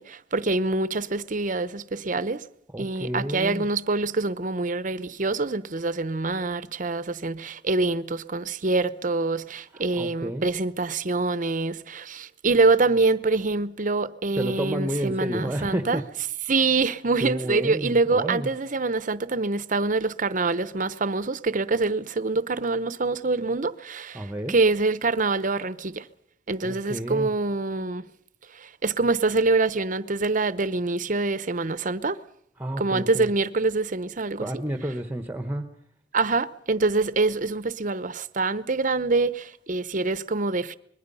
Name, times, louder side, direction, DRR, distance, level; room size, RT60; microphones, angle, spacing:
voice 1, 0.0-2.4 2.8-16.0 16.5-26.1 26.5-28.1 28.5-32.2 32.8-34.5 36.1-40.8, right 3 dB, 45° right, 0.9 m, -25 dB
voice 2, 2.7-3.7 9.7-10.5 14.4-16.0 17.2-18.5 24.1-24.6 26.6-27.3 32.6-33.3 34.4-35.7, right 1 dB, 10° right, 1.2 m, -30 dB
25.5 x 21.5 x 5.6 m
head